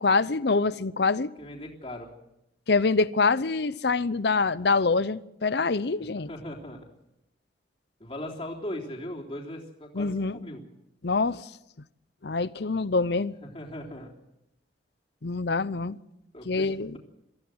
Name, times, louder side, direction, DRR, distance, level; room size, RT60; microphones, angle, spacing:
voice 1, 0.0-1.3 2.7-6.3 9.9-10.4 11.0-11.5 12.2-13.4 15.2-16.0 16.4-17.0, left 4 dB, 60° left, 0.7 m, -25 dB
voice 2, 1.4-2.1 6.2-6.8 8.0-10.6 13.5-14.1 16.3-17.0, left 1 dB, 30° left, 3.5 m, -38 dB
23.5 x 15.0 x 7.9 m
head